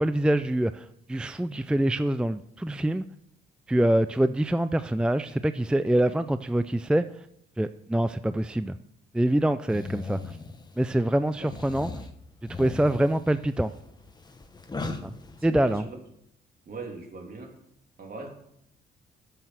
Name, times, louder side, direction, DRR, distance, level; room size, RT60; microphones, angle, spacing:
voice 1, 0.0-3.0 3.7-7.3 7.6-8.8 9.1-10.4 10.8-11.9 12.6-13.7 15.0-15.1 15.4-15.8, right 1 dB, 5° right, 12 dB, 0.4 m, -25 dB
sound 1, 9.7-10.9 11.4-15.8, left 3 dB, 20° left, 1.3 m, -38 dB
voice 2, 15.4-16.0 16.6-17.6 18.0-18.3, right 4 dB, 50° right, 2 dB, 3.2 m, -40 dB
11.0 x 7.9 x 6.2 m, 0.74 s
cardioid pair, 90°, 20 cm